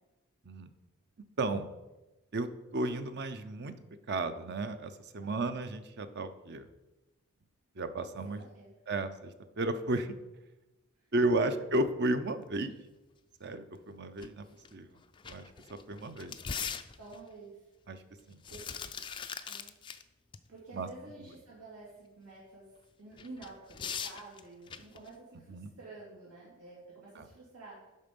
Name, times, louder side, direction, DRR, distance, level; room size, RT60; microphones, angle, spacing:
voice 1, 1.4-1.7 2.3-3.7 4.1-6.7 7.8-8.4 8.9-10.1 11.1-12.7 13.4-14.5 14.7-15.0 15.2-16.4 17.9-18.0 18.3-18.4 20.7-20.9 25.5-25.7 27.2-27.3, right 2 dB, 50° right, 10 dB, 0.6 m, -33 dB
sound 1, 14.2-14.3 14.6-14.7 15.1-17.3 18.2-20.0 20.3-20.4 23.2-25.1, left 7 dB, 20° left, 0.3 m, -41 dB
voice 2, 17.0-17.7 18.5-18.7 19.4-19.7 20.5-22.7 23.0-27.8, right 3 dB, 85° right, -7 dB, 2.5 m, -50 dB
11.0 x 4.2 x 5.3 m, 1.0 s
head